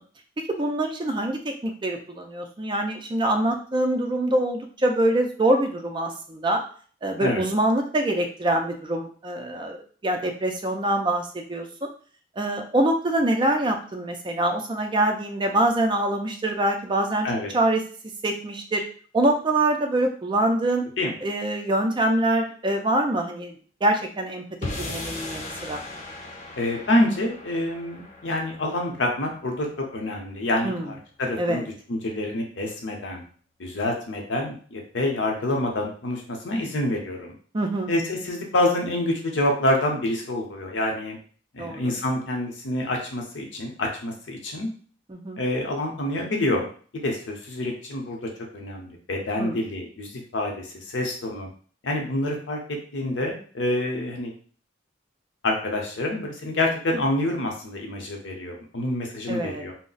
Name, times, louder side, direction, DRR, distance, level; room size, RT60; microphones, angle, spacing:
voice 1, 0.4-6.6 7.0-9.8 10.0-11.9 12.4-17.3 17.5-17.8 18.2-18.8 19.1-20.9 21.2-23.5 23.8-24.4 24.8-25.8 30.6-30.9 31.4-31.7 37.5-37.9 41.6-41.9 45.1-45.4 49.4-49.6 59.3-59.6, right 1 dB, 25° right, 3 dB, 0.4 m, -24 dB
sound 1, 24.6-31.0, left 2 dB, 40° left, 0.5 m, -38 dB
voice 2, 26.6-29.7 29.9-31.6 31.9-33.2 33.6-37.3 37.9-41.2 41.5-44.7 45.4-46.7 46.9-48.2 48.5-51.5 51.8-52.6 52.9-54.3 55.4-59.7, left 1 dB, 80° left, 1 dB, 0.7 m, -27 dB
2.3 x 2.0 x 3.8 m, 0.44 s
head